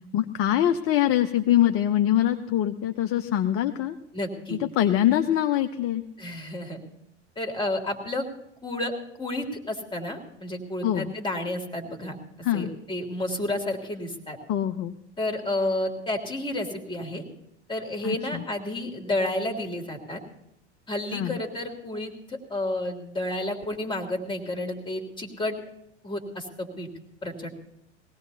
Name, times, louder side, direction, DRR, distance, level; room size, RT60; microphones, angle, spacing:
voice 1, 0.1-4.0 4.5-6.0 10.8-11.1 12.4-12.7 14.5-14.9 18.0-18.2 21.1-21.4, left 11 dB, 40° left, 7 dB, 0.8 m, -23 dB
voice 2, 4.1-4.6 6.2-6.8 7.4-8.3 8.6-12.2 12.5-14.4 15.2-17.2 17.7-20.2 20.9-25.6 26.0-26.9 27.2-27.5, left 1 dB, 15° left, 3 dB, 2.7 m, -31 dB
21.5 x 17.0 x 2.8 m, 0.80 s
hypercardioid pair, 85°, 35 cm